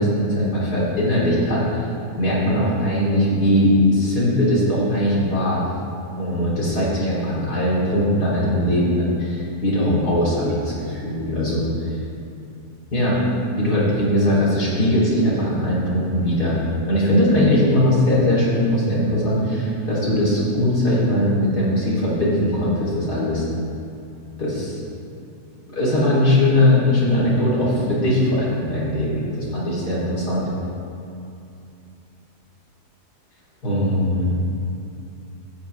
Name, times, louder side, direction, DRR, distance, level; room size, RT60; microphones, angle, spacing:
voice 1, 0.0-1.9 2.2-5.6 6.2-12.0 12.9-13.2 13.6-16.6 16.8-23.5 24.4-24.8 25.7-30.5 33.6-34.3, left 1 dB, 70° left, -8 dB, 4.0 m, -20 dB
16.0 x 9.8 x 3.4 m, 2.6 s
omnidirectional pair, 1.7 m